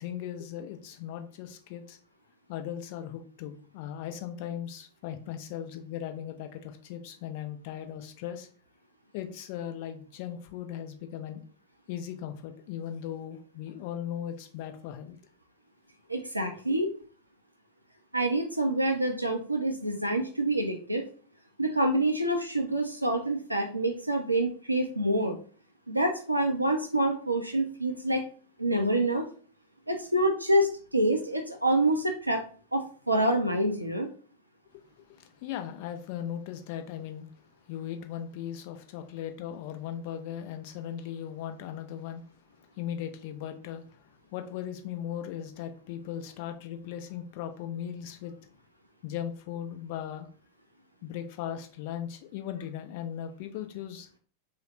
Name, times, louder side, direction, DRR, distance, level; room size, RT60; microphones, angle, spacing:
voice 1, 0.0-2.0 2.5-8.5 9.1-11.4 11.9-15.2 16.4-16.8 35.4-37.3 37.7-42.2 42.8-43.8 44.3-48.4 49.0-50.3 51.0-54.1, left 10 dB, 50° left, 0.4 m, -38 dB
voice 2, 16.1-16.9 18.1-21.0 21.6-25.4 25.9-28.2 28.6-29.2 29.9-32.4 32.7-32.8 33.1-34.1, right 1 dB, 90° right, 0.4 m, -27 dB
3.1 x 2.0 x 2.9 m
figure-of-eight pair, 90°, 0 cm